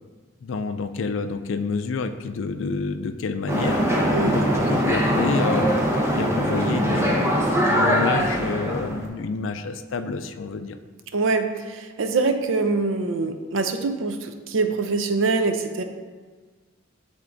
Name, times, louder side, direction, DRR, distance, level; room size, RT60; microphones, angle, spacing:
voice 1, 0.4-5.8 6.1-10.8, left 4 dB, 75° left, 10 dB, 0.4 m, -29 dB
sound 1, 3.5-9.1, equal, 15° right, 0.8 m, -22 dB
voice 2, 11.1-15.8, right 3 dB, 90° right, 7 dB, 0.6 m, -24 dB
11.0 x 3.7 x 2.6 m, 1.4 s
head